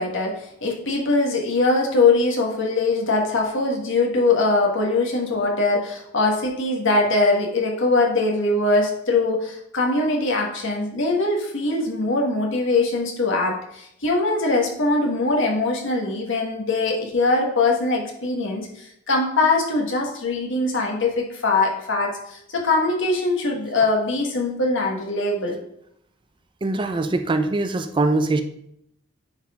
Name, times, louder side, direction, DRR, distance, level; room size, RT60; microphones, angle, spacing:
voice 1, 0.0-25.5, left 3 dB, 65° left, 0 dB, 1.5 m, -22 dB
voice 2, 26.6-28.4, right 2 dB, 25° right, 8 dB, 0.4 m, -22 dB
9.5 x 4.1 x 3.6 m, 0.75 s
head